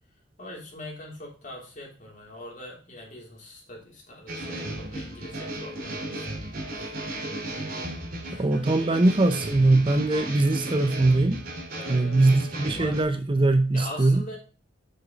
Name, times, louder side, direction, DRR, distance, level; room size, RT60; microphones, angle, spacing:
voice 1, 0.4-6.4 6.7-7.4 8.2-9.0 9.3-9.4 10.1-10.3 11.7-12.2 12.6-13.0 13.7-14.4, left 1 dB, 40° left, -2 dB, 3.4 m, -43 dB
sound 1, 4.3-13.0, right 1 dB, 45° right, 3.0 m, -35 dB
voice 2, 8.4-11.4 11.9-14.2, right 2 dB, 25° right, 9 dB, 0.6 m, -21 dB
7.5 x 6.1 x 3.9 m, 0.37 s
head